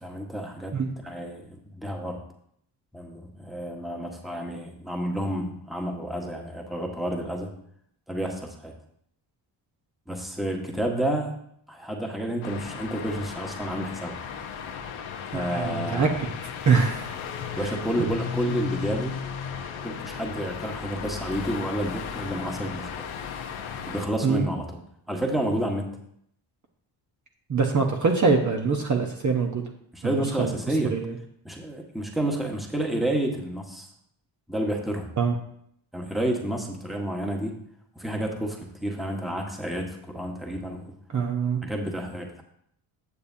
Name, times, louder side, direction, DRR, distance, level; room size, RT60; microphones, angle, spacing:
voice 1, 0.0-0.7 1.0-2.2 2.9-7.5 8.1-8.7 10.1-11.3 11.7-14.2 15.3-16.2 17.6-19.2 19.8-23.1 23.8-24.8 25.1-25.9 29.9-30.9 31.4-33.9 34.5-35.1 35.9-37.6 37.9-40.9 41.6-42.4, right 1 dB, ahead, 1 dB, 1.4 m, -30 dB
sound 1, 12.4-24.1, left 7 dB, 80° left, 1.0 m, -35 dB
voice 2, 15.3-16.1 16.7-17.1 24.2-24.5 27.5-29.6 30.0-30.5 30.9-31.1 35.2-35.4 41.1-41.6, right 5 dB, 40° right, 2 dB, 1.1 m, -24 dB
9.6 x 6.7 x 2.8 m, 0.69 s
cardioid pair, 65°, 47 cm